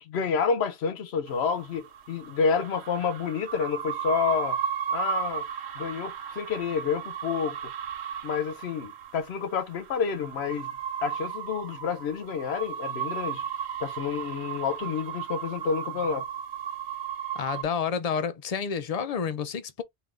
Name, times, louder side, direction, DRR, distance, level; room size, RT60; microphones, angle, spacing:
voice 1, 0.0-4.6 4.9-5.5 5.8-7.7 8.2-10.7 11.0-13.4 13.8-16.2, left 6 dB, 80° left, 1.0 m, -29 dB
sound 1, 1.3-17.6, right 8 dB, 80° right, 0.9 m, -35 dB
voice 2, 17.3-19.8, left 6 dB, 50° left, 0.5 m, -29 dB
3.3 x 2.8 x 3.6 m
omnidirectional pair, 1.1 m